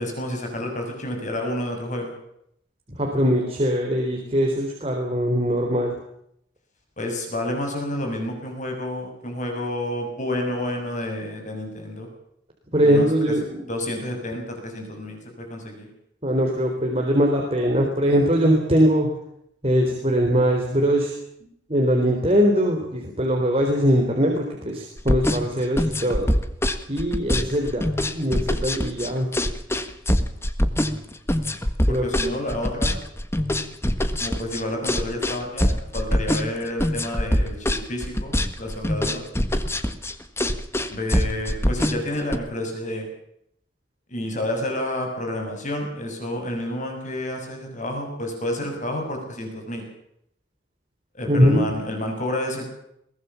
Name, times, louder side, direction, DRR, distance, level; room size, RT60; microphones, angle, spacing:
voice 1, 0.0-2.2 7.0-12.1 12.8-13.3 13.7-15.9 31.9-33.0 34.2-39.2 40.9-43.1 44.1-49.8 51.1-52.7, left 1 dB, 40° left, 3 dB, 6.8 m, -30 dB
voice 2, 3.0-5.9 12.7-13.6 16.2-19.1 19.6-21.1 21.7-26.3 26.9-27.9 28.1-29.3 31.9-32.3 51.3-51.6, equal, 30° right, 1 dB, 4.0 m, -21 dB
sound 1, 25.0-42.4, left 1 dB, 15° left, 1.5 m, -23 dB
22.5 x 19.5 x 7.2 m, 0.75 s
head